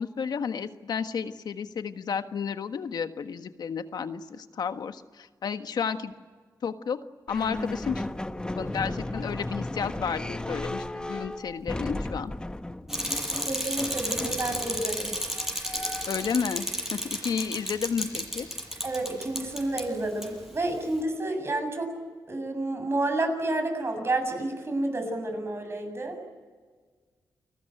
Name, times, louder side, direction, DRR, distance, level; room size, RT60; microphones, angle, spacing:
voice 1, 0.0-6.1 6.6-7.0 7.3-8.0 8.5-12.3 16.1-18.5, left 6 dB, 70° left, 9 dB, 1.5 m, -32 dB
sound 1, 7.3-16.4, left 1 dB, 10° left, 1.0 m, -35 dB
Bicycle, 12.9-19.8 20.2-20.3, equal, 5° right, 7.3 m, -32 dB
voice 2, 13.5-15.2 18.8-21.9 22.3-26.2, right 2 dB, 35° right, 6 dB, 7.3 m, -30 dB
29.0 x 20.0 x 9.1 m, 1.5 s
cardioid pair, 90°, 7 cm